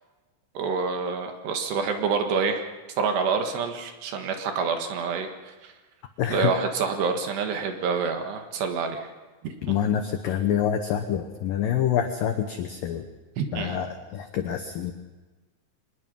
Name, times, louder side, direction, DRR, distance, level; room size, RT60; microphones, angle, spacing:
voice 1, 0.6-2.7 3.0-5.7 6.3-9.1 9.4-9.5 13.4-13.8, right 5 dB, 65° right, 5 dB, 3.5 m, -27 dB
voice 2, 6.2-6.5 9.6-13.1 13.5-14.9, left 9 dB, 85° left, 6 dB, 2.0 m, -26 dB
24.0 x 20.5 x 5.4 m, 1.2 s
omnidirectional pair, 5.5 m